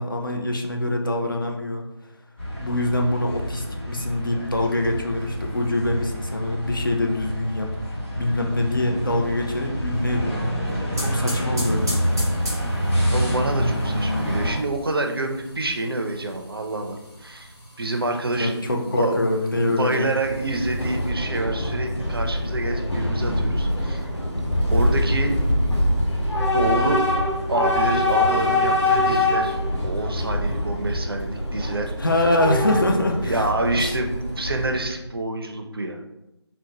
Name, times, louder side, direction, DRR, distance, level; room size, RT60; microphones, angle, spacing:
voice 1, 0.0-1.8 2.6-7.7 8.2-10.5 11.0-12.3 18.4-20.1 32.0-33.4 33.7-34.0, left 1 dB, 50° left, 2 dB, 0.5 m, -24 dB
sound 1, 2.4-14.5, equal, 30° left, 1.5 m, -27 dB
sound 2, 10.5-21.1, equal, 5° right, 0.5 m, -39 dB
voice 2, 13.1-19.2 19.6-24.0 24.7-25.4 26.5-27.0 27.5-29.6 29.8-31.9 33.2-36.0, right 2 dB, 55° right, 4 dB, 0.4 m, -27 dB
Train / Subway metro underground, 20.1-35.0, left 1 dB, 80° left, 0.9 m, -24 dB
3.6 x 2.1 x 2.8 m, 0.91 s
figure-of-eight pair, 165°, 15 cm